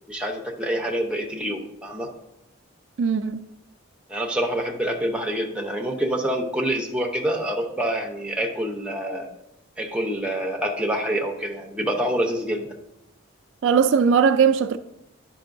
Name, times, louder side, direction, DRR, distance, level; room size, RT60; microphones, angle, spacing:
voice 1, 0.1-2.1 4.1-9.3 9.8-12.7, right 1 dB, 5° right, 0.7 m, -26 dB
voice 2, 3.0-3.4 13.6-14.8, right 6 dB, 65° right, 0.3 m, -19 dB
10.5 x 5.4 x 2.6 m
head